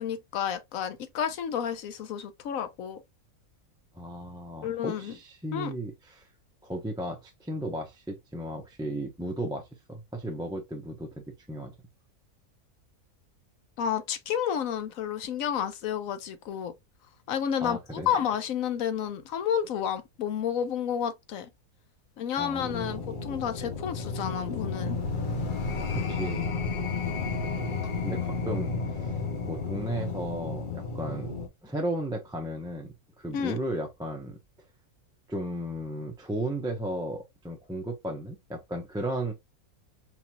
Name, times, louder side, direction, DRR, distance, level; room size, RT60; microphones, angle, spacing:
voice 1, 0.0-3.0 4.6-5.2 5.5-5.7 13.8-16.7 17.3-21.5 22.2-25.0 33.3-33.6, left 8 dB, 70° left, 1.0 m, -31 dB
voice 2, 3.9-6.3 6.6-11.7 17.6-18.2 22.4-23.1 25.9-26.6 28.0-29.1 29.5-31.4 31.6-32.9 33.2-34.4 35.3-39.3, right 1 dB, 5° right, 0.5 m, -35 dB
sound 1, 22.6-31.5, left 4 dB, 45° left, 0.7 m, -32 dB
4.9 x 3.0 x 2.3 m
omnidirectional pair, 1.5 m